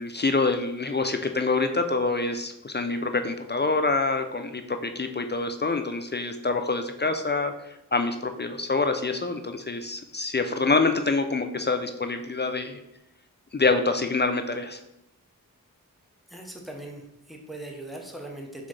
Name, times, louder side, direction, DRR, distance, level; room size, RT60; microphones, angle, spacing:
voice 1, 0.0-12.8 13.5-14.8, left 3 dB, 30° left, 7 dB, 0.4 m, -26 dB
voice 2, 16.3-18.7, right 1 dB, ahead, 0 dB, 0.8 m, -40 dB
4.1 x 3.6 x 3.2 m, 0.85 s
wide cardioid pair, 50°, 34 cm